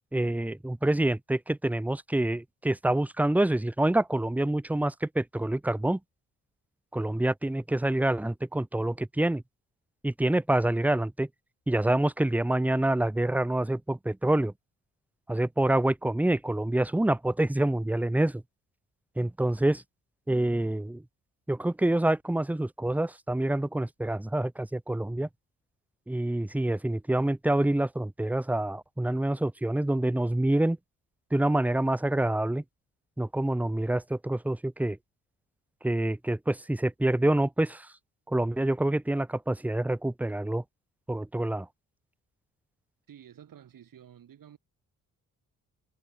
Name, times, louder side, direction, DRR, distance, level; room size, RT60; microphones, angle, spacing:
voice 1, 0.1-6.0 6.9-9.4 10.0-11.3 11.7-14.5 15.3-18.4 19.2-19.8 20.3-21.0 21.5-25.3 26.1-30.8 31.3-32.6 33.2-35.0 35.8-37.9 38.3-40.6 41.1-41.7, right 1 dB, 5° right, 0.7 m, -27 dB
voice 2, 43.1-44.6, right 9 dB, 70° right, 6.8 m, -51 dB
supercardioid pair, 55°, 35 cm